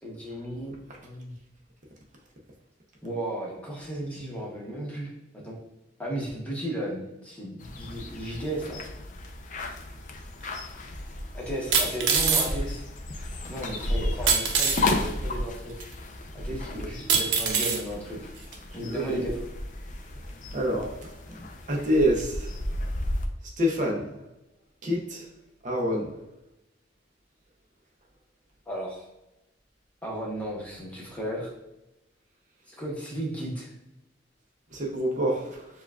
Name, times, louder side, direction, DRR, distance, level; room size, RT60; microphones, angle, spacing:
voice 1, 0.0-1.3 3.0-5.6 6.0-8.8 11.3-12.8 13.5-15.7 16.3-18.2 18.7-19.3 28.7-29.0 30.0-31.5 32.7-33.7, right 1 dB, 10° left, -4 dB, 0.9 m, -35 dB
sound 1, 7.6-23.3, left 2 dB, 45° left, 0.5 m, -34 dB
sound 2, 10.4-10.5 11.7-12.5 14.3-14.8 15.8-15.9 17.1-17.8 18.5-18.6, right 5 dB, 85° right, 0.7 m, -23 dB
voice 2, 18.8-19.3 20.5-20.9 21.7-22.5 23.6-24.1 24.8-25.3 25.6-26.1 34.7-35.7, equal, 40° right, -1 dB, 0.7 m, -26 dB
6.8 x 2.3 x 2.4 m, 0.92 s
head